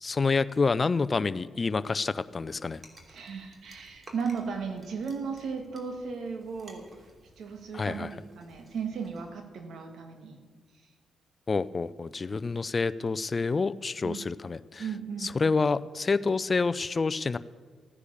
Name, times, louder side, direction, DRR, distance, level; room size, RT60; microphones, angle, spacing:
voice 1, 0.0-2.8 7.7-8.1 11.5-14.8 15.2-17.4, left 4 dB, 35° left, 16 dB, 0.5 m, -28 dB
sound 1, 2.2-9.3, right 1 dB, 35° right, 2.8 m, -56 dB
voice 2, 3.1-6.8 7.4-10.4 14.0-14.2 14.8-15.3, right 5 dB, 70° right, 5 dB, 2.0 m, -36 dB
15.0 x 9.9 x 7.0 m, 1.5 s
cardioid pair, 70°, 0 cm